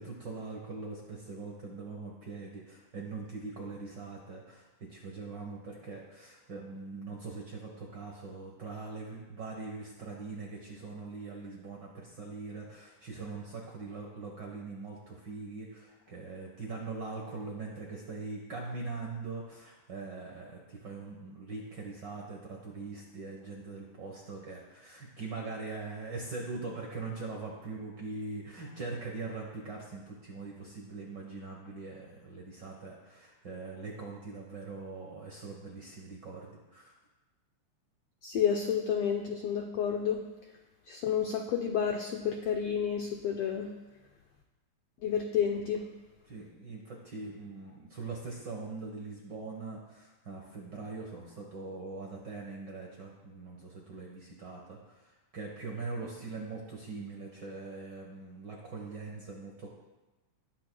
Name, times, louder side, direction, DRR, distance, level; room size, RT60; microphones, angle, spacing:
voice 1, 0.0-37.0 46.3-59.7, right 3 dB, 55° right, -2 dB, 1.2 m, -42 dB
voice 2, 38.2-40.2 40.9-43.7 45.0-45.8, left 8 dB, 85° left, 3 dB, 1.3 m, -30 dB
20.5 x 8.6 x 2.3 m, 1.1 s
omnidirectional pair, 3.6 m